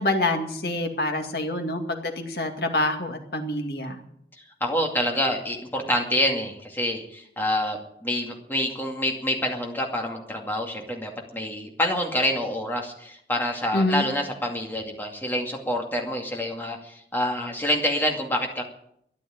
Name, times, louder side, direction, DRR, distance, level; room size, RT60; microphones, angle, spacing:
voice 1, 0.0-4.0 13.7-14.1, left 2 dB, 65° left, 4 dB, 2.2 m, -26 dB
voice 2, 4.4-18.6, equal, 10° left, 1 dB, 2.4 m, -27 dB
13.5 x 10.5 x 9.1 m, 0.73 s
head